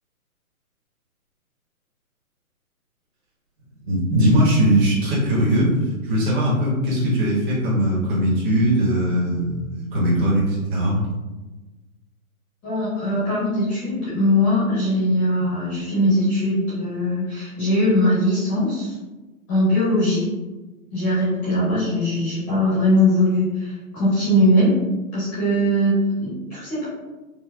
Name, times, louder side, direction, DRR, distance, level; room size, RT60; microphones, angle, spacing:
voice 1, 3.8-5.7 6.1-11.0, right 1 dB, 35° right, -8 dB, 1.2 m, -20 dB
voice 2, 12.6-18.9 19.5-20.2 20.9-24.7 25.1-26.9, left 1 dB, 15° left, -12 dB, 0.7 m, -20 dB
4.5 x 2.1 x 2.2 m, 1.2 s
hypercardioid pair, 155°, 43 cm